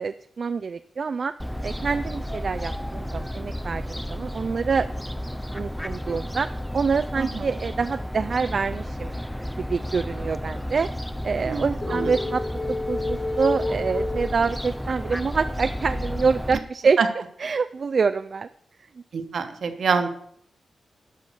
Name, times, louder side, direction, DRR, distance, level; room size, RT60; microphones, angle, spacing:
voice 1, 0.0-1.3 1.6-4.9 5.5-6.5 6.7-9.1 9.6-10.9 11.2-12.4 12.9-17.0 17.4-18.5, right 5 dB, 55° right, 9 dB, 0.4 m, -26 dB
Fowl, 1.4-16.6, equal, 5° left, 0.5 m, -32 dB
voice 2, 11.4-12.1 17.0-17.1 19.1-20.1, right 5 dB, 70° right, 8 dB, 1.2 m, -26 dB
sound 1, 11.8-15.0, left 2 dB, 30° left, 1.0 m, -30 dB
11.5 x 5.6 x 6.7 m, 0.66 s
wide cardioid pair, 95°, 0 cm